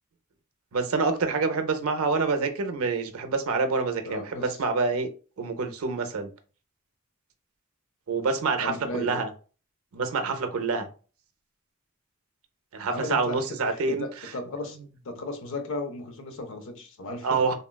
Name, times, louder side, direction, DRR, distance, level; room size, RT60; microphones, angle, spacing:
voice 1, 0.7-5.1 5.4-6.3 8.1-9.3 9.9-10.9 12.7-14.1 17.2-17.5, right 4 dB, 75° right, 0.5 m, -27 dB
voice 2, 4.1-4.6 8.6-9.2 12.9-14.8 15.0-17.4, left 2 dB, 65° left, 0.6 m, -35 dB
3.5 x 2.2 x 2.2 m
head